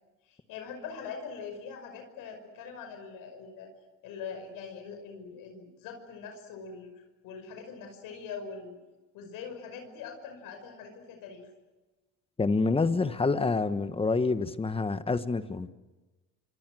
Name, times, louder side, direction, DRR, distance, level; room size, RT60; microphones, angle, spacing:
voice 1, 0.3-3.7 4.0-6.9 7.2-8.8 9.1-11.5, left 6 dB, 80° left, 5 dB, 5.8 m, -42 dB
voice 2, 12.4-15.7, left 3 dB, 15° left, 11 dB, 1.2 m, -27 dB
28.5 x 25.5 x 6.3 m, 1.2 s
cardioid pair, 130°, 33 cm